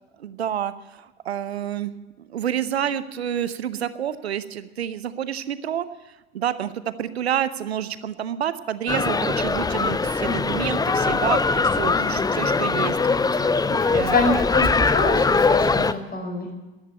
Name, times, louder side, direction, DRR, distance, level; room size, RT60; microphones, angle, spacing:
voice 1, 0.2-1.9 2.2-5.9 6.3-13.0 13.3-14.4, right 10 dB, 80° right, 15 dB, 0.8 m, -29 dB
sound 1, 8.9-15.9, left 4 dB, 10° left, 0.6 m, -21 dB
voice 2, 13.8-16.5, left 3 dB, 30° left, 4 dB, 4.7 m, -26 dB
13.5 x 11.0 x 9.1 m, 1.2 s
figure-of-eight pair, 65°, 31 cm